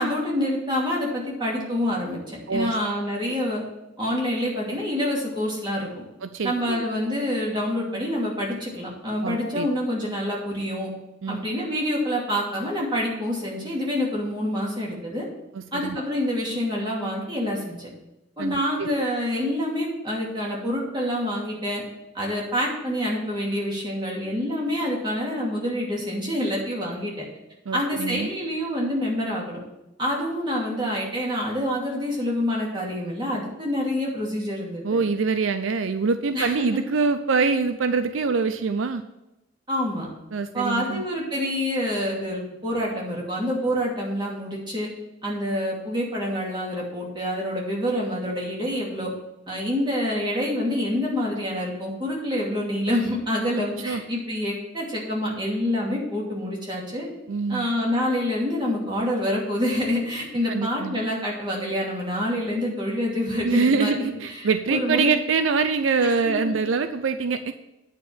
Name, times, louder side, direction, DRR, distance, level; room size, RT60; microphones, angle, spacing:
voice 1, 0.0-3.6 4.0-5.9 6.4-10.9 11.3-15.2 15.7-17.9 18.4-21.8 22.1-27.2 27.7-29.6 30.0-35.0 36.3-36.7 39.7-40.1 40.5-44.9 45.2-49.1 49.5-57.1 57.5-65.1 66.0-66.3, left 1 dB, 25° right, -4 dB, 2.6 m, -27 dB
voice 2, 6.2-6.8 9.2-9.7 11.2-11.5 15.5-16.0 18.4-18.9 27.7-28.3 34.8-39.0 40.3-41.1 53.9-54.0 57.3-57.7 60.5-61.0 63.4-67.5, right 4 dB, 80° right, 9 dB, 0.5 m, -24 dB
9.2 x 4.9 x 7.1 m, 0.94 s
head